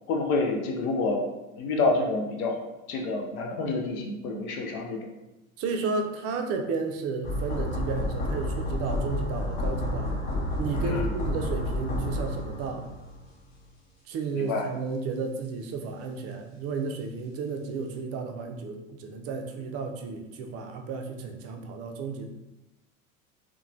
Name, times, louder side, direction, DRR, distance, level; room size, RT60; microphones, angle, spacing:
voice 1, 0.1-1.2 1.6-2.6 2.9-5.1 10.8-11.1 14.3-14.7, left 3 dB, 80° left, 2 dB, 0.7 m, -28 dB
voice 2, 5.6-10.1 10.6-12.9 14.1-22.3, right 4 dB, 35° right, 4 dB, 0.4 m, -33 dB
sound 1, 7.2-13.3 13.6-13.7, left 1 dB, 45° left, 0.9 m, -30 dB
2.9 x 2.2 x 2.5 m, 0.96 s
hypercardioid pair, 90°, 42 cm